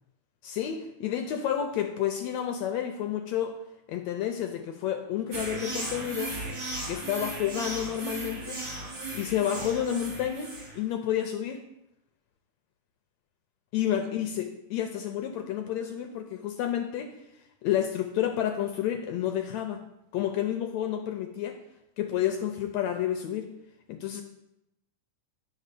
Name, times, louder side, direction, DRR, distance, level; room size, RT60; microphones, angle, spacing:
voice 1, 0.4-3.5 3.9-6.3 6.9-8.6 9.1-11.6 13.7-17.1 17.6-19.8 20.1-21.6 22.0-23.5 23.9-24.2, left 10 dB, 75° left, 5 dB, 1.7 m, -30 dB
sound 1, 5.3-10.8, right 2 dB, 35° right, 1.7 m, -36 dB
10.5 x 4.3 x 6.7 m, 0.86 s
omnidirectional pair, 3.6 m